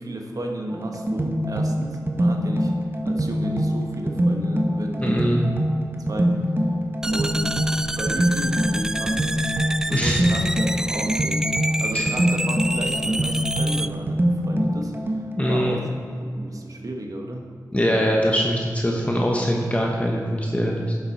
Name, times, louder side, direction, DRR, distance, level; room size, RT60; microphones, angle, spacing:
voice 1, 0.0-2.7 3.0-5.3 6.1-6.7 7.0-9.5 9.8-11.5 11.8-15.9 16.2-17.5, right 1 dB, 55° right, 2 dB, 1.2 m, -33 dB
sound 1, 0.7-15.6, equal, 30° right, 1.0 m, -24 dB
voice 2, 5.0-5.4 9.9-10.2 11.9-12.0 15.4-15.8 17.7-20.9, equal, 20° left, -1 dB, 1.0 m, -22 dB
sound 2, 7.0-13.9, right 1 dB, 10° right, 0.3 m, -28 dB
9.7 x 7.3 x 4.3 m, 2.3 s
cardioid pair, 45°, 7 cm